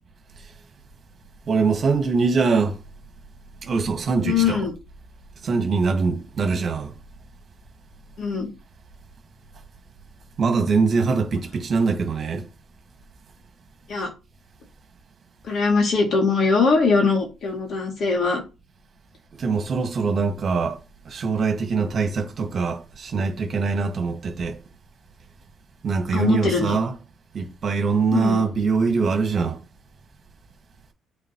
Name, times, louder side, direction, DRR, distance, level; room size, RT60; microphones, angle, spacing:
voice 1, 1.5-2.8 3.6-4.6 5.4-6.9 10.4-12.4 19.4-20.8 21.1-24.6 25.8-26.9 27.3-29.6, right 4 dB, 50° right, 1.8 m, -23 dB
voice 2, 4.2-4.7 8.2-8.5 13.9-14.1 15.4-18.4 26.1-26.8 28.1-28.5, left 4 dB, 55° left, 2.6 m, -21 dB
8.7 x 4.2 x 3.1 m
supercardioid pair, 75°, 0 cm